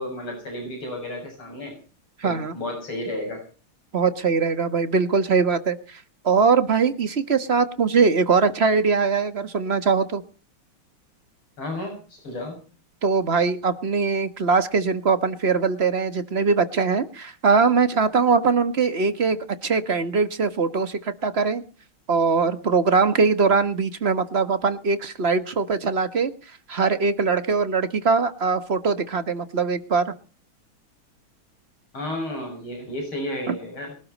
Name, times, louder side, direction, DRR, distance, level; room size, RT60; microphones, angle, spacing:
voice 1, 0.0-1.7 2.2-3.4 11.6-12.6 31.9-33.9, left 1 dB, 75° left, 2 dB, 7.6 m, -32 dB
voice 2, 2.2-2.5 3.9-10.2 13.0-19.4 19.6-21.6 22.1-26.3 26.7-30.1 33.5-33.6, right 5 dB, 35° right, 11 dB, 1.5 m, -21 dB
22.5 x 12.5 x 4.2 m, 0.38 s
omnidirectional pair, 2.3 m